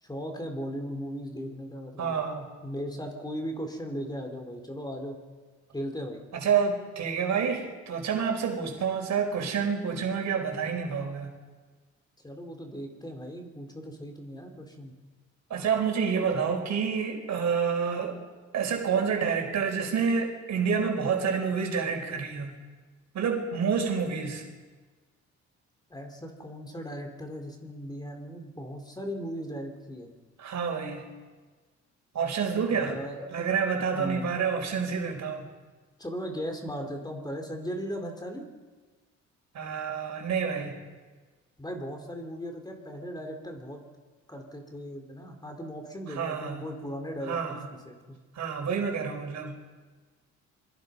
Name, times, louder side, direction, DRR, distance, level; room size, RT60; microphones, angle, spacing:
voice 1, 0.0-5.2 5.7-6.2 12.2-14.9 25.9-30.1 32.7-33.3 33.9-34.3 36.0-38.5 41.6-43.8 44.3-48.2, equal, 15° left, 3 dB, 4.5 m, -37 dB
voice 2, 2.0-2.5 6.3-11.3 15.5-18.2 18.5-22.6 23.1-24.4 30.4-31.1 32.1-33.0 33.3-35.5 39.5-40.8 46.2-46.6 47.3-47.6 48.3-49.5, right 6 dB, 65° right, 2 dB, 5.5 m, -28 dB
26.5 x 23.0 x 5.6 m, 1.4 s
cardioid pair, 90°, 30 cm